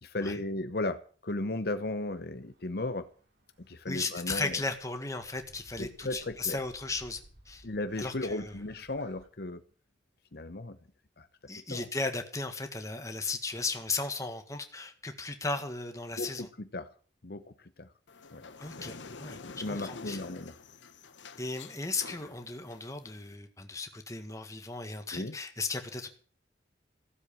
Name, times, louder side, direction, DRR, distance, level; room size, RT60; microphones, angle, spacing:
voice 1, 0.0-3.1 3.6-4.6 5.8-6.6 7.6-9.6 10.3-10.8 11.2-11.3 11.7-11.9 16.2-16.9 17.2-17.9 18.3-18.5 18.8-19.0 19.6-20.5 25.1-25.4, left 2 dB, 55° left, 10 dB, 0.9 m, -36 dB
sound 1, 1.5-9.3, right 1 dB, 65° right, 3.3 m, -59 dB
voice 2, 3.9-7.2 7.4-7.7 8.0-8.6 11.5-16.5 18.6-20.2 21.4-26.1, left 3 dB, 15° left, 6 dB, 1.7 m, -36 dB
sound 2, 18.1-23.3, left 4 dB, 80° left, 1.1 m, -47 dB
16.0 x 7.8 x 8.6 m, 0.42 s
head